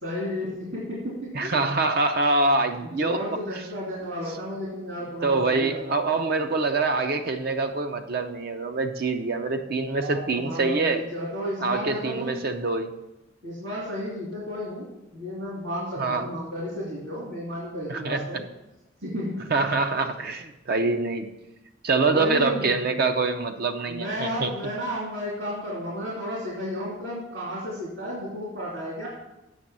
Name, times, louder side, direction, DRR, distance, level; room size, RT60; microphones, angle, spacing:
voice 1, 0.0-1.1 1.4-1.6 2.8-5.9 9.8-12.4 13.4-18.4 19.0-19.4 22.1-22.6 23.9-29.1, equal, 70° right, -6 dB, 2.8 m, -33 dB
voice 2, 1.3-3.2 5.2-11.0 11.6-12.9 16.0-16.3 17.9-18.3 19.5-21.3 21.8-24.7, right 3 dB, 50° right, 6 dB, 0.6 m, -25 dB
8.1 x 6.1 x 7.3 m, 0.93 s
head